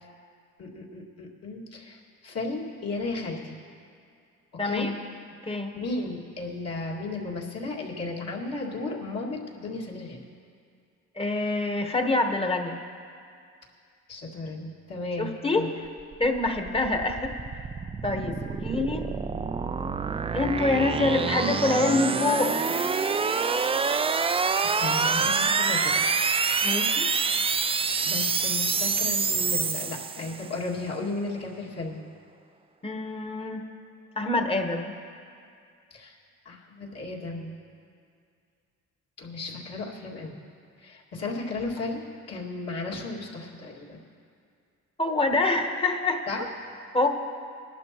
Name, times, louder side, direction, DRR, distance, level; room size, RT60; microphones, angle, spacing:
voice 1, 0.6-3.6 4.5-4.9 5.8-10.2 14.1-15.7 18.2-18.3 24.3-26.1 28.0-32.0 35.9-36.2 36.5-37.5 39.2-40.4 40.8-44.0 46.3-46.5, left 3 dB, 55° left, -3 dB, 2.2 m, -34 dB
voice 2, 4.6-4.9 5.4-5.8 11.2-12.8 15.2-15.9 16.2-17.3 18.0-19.0 20.3-22.6 26.6-27.1 32.8-33.7 34.2-34.9 45.0-46.3 46.9-47.1, left 2 dB, 20° left, 4 dB, 1.2 m, -26 dB
sound 1, 16.0-30.5, right 5 dB, 20° right, 0.3 m, -27 dB
20.5 x 11.5 x 3.0 m, 2.3 s
cardioid pair, 90°, 30 cm